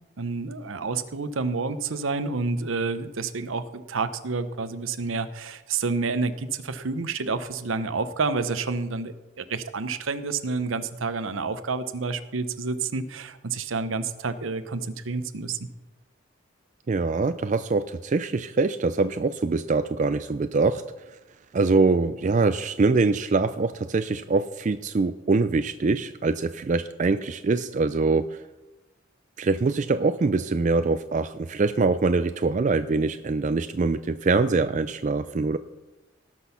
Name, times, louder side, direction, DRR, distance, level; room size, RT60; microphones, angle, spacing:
voice 1, 0.2-15.7, right 4 dB, 85° right, 11 dB, 0.8 m, -29 dB
voice 2, 16.9-20.8 21.5-28.4 29.4-35.6, right 3 dB, 40° right, 10 dB, 0.4 m, -24 dB
18.0 x 6.2 x 5.6 m, 1.1 s
head